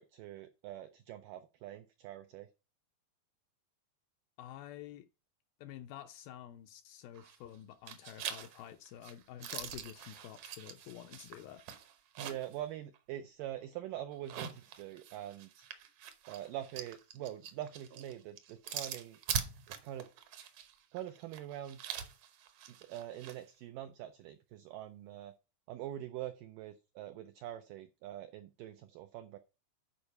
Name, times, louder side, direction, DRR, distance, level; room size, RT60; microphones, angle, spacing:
voice 1, 0.0-2.5 12.2-15.7 16.3-19.2 19.7-20.1 20.9-21.9 22.7-25.3 25.7-29.4, right 12 dB, 90° right, 1.9 m, -44 dB
voice 2, 4.4-5.1 5.6-11.7, left 11 dB, 80° left, 2.1 m, -49 dB
sound 1, 7.1-7.6 7.9-12.6 12.9-13.0 14.1-23.4, right 8 dB, 70° right, 1.7 m, -43 dB
10.0 x 4.7 x 5.4 m
omnidirectional pair, 4.6 m